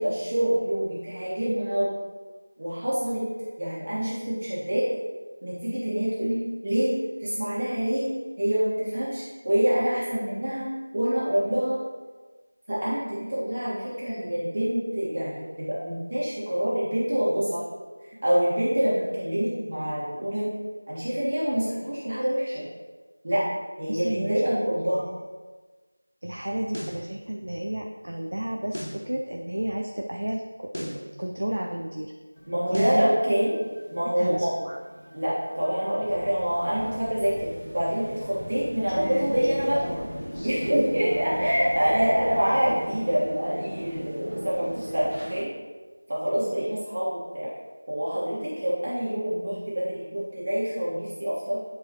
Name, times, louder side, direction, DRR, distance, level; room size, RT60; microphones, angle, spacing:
voice 1, 0.0-1.9 2.6-3.2 3.6-4.9 5.4-8.1 8.4-11.8 12.7-17.6 18.2-20.5 20.9-22.6 23.2-23.4 23.8-25.1 32.5-33.6 33.9-34.5 35.1-37.5 37.7-39.8 40.4-45.5 46.1-47.5 47.9-51.6, equal, 35° right, -9 dB, 1.8 m, -26 dB
voice 2, 23.9-24.5 26.2-32.1 32.7-33.0 34.2-34.8, right 1 dB, 55° right, 1 dB, 0.6 m, -32 dB
sound 1, 26.7-27.0 28.7-29.0 30.7-31.0 32.7-33.0, equal, 85° left, 2.3 m, -35 dB
sound 2, 32.3-45.4, equal, 70° right, 1.2 m, -40 dB
Crow, 36.0-42.7, equal, 20° left, 1.0 m, -39 dB
11.0 x 4.7 x 3.1 m, 1.3 s
figure-of-eight pair, 175°, 0 cm